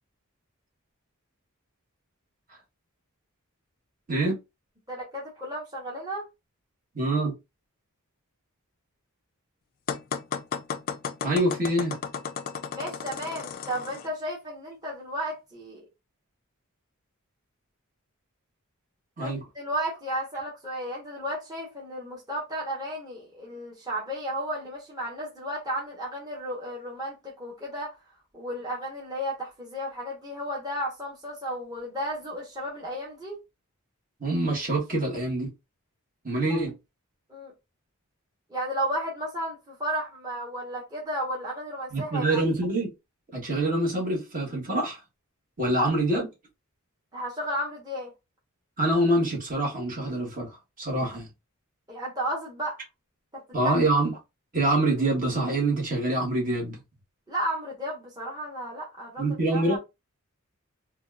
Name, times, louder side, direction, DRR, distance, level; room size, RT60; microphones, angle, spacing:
voice 1, 4.9-6.2 12.7-15.8 19.2-27.9 28.3-33.4 37.3-37.5 38.5-42.4 45.6-45.9 47.1-48.1 51.9-52.8 53.3-53.8 57.3-59.2 59.5-59.8, equal, 20° right, 1.0 m, -33 dB
voice 2, 6.9-7.4 11.2-12.0 19.2-19.4 34.2-35.5 36.2-36.7 41.9-42.9 43.3-45.0 45.6-46.3 48.8-51.3 53.5-54.1 54.5-56.8 59.2-59.8, right 1 dB, 40° right, 1.2 m, -25 dB
sound 1, 9.9-14.1, left 6 dB, 40° left, 0.3 m, -34 dB
3.8 x 2.3 x 2.3 m
head